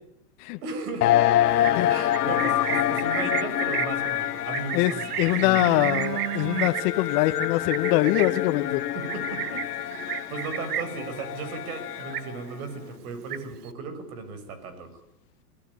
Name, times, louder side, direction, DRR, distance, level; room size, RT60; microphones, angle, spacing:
voice 1, 0.6-1.1 1.9-6.0 8.9-9.7 10.3-15.0, right 4 dB, 65° right, 10 dB, 6.4 m, -36 dB
sound 1, 1.0-12.4, left 13 dB, 80° left, 1.1 m, -27 dB
Livestock farm animals working animals, 1.5-11.1 11.4-11.7 12.0-12.7 13.0-13.7, right 11 dB, 80° right, 1.6 m, -32 dB
voice 2, 5.2-8.8, left 16 dB, 45° left, 8 dB, 1.4 m, -23 dB
23.0 x 17.5 x 9.6 m, 0.78 s
hypercardioid pair, 130°, 46 cm